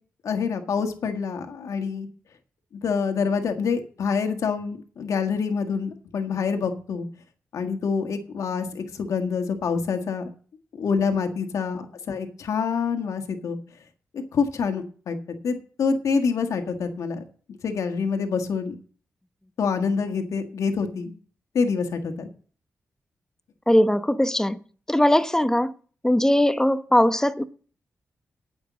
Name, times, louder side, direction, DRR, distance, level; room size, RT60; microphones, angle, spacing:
voice 1, 0.2-2.1 2.8-7.0 7.5-10.3 10.7-13.6 14.3-15.2 15.4-17.2 17.6-18.7 19.6-21.1 21.5-22.3, left 5 dB, 75° left, 1.6 m, -26 dB
voice 2, 23.7-24.6 24.9-25.7 26.0-27.4, left 1 dB, 10° left, 0.9 m, -20 dB
9.2 x 7.2 x 7.4 m
cardioid pair, 55°, 5 cm